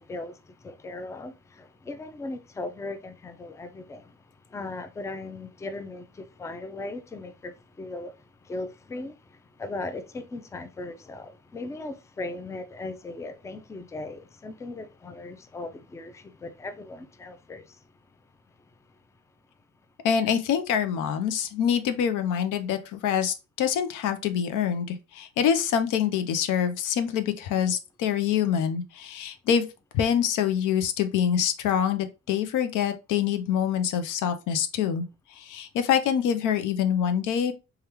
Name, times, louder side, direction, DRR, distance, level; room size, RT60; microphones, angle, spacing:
voice 1, 0.0-4.2 4.5-8.2 8.4-17.8, left 2 dB, 10° left, 0.3 m, -38 dB
voice 2, 20.0-29.7 29.9-35.1 35.3-37.5, left 8 dB, 85° left, 0.5 m, -25 dB
3.4 x 2.3 x 2.9 m
cardioid pair, 90°, 30 cm